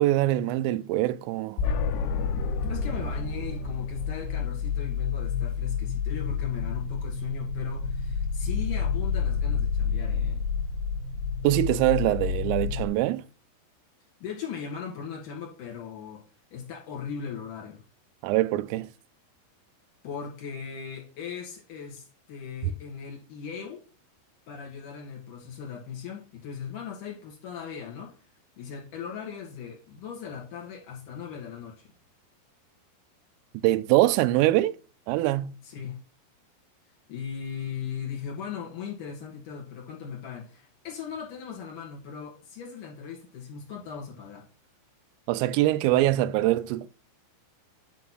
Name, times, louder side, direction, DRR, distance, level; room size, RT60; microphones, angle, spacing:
voice 1, 0.0-1.6 11.4-13.2 18.2-18.9 33.6-34.8 35.1-35.6 45.3-46.9, right 15 dB, 90° right, 3.2 m, -23 dB
sound 1, 1.6-12.9, left 6 dB, 80° left, 2.9 m, -29 dB
voice 2, 2.7-10.4 14.2-16.2 16.5-17.8 20.0-23.8 24.5-28.1 28.6-31.9 35.6-36.0 37.1-44.5, left 7 dB, 50° left, 3.0 m, -38 dB
9.4 x 4.0 x 6.2 m
omnidirectional pair, 5.7 m